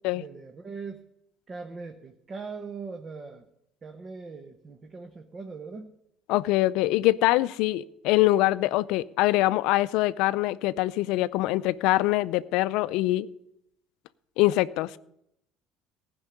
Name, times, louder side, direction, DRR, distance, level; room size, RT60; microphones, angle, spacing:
voice 1, 0.1-1.0 1.5-3.4 3.8-6.0, right 4 dB, 35° right, 1.1 m, -40 dB
voice 2, 6.3-13.3 14.4-14.9, left 17 dB, 75° left, 0.4 m, -24 dB
15.0 x 5.4 x 9.7 m
supercardioid pair, 85°, 0 cm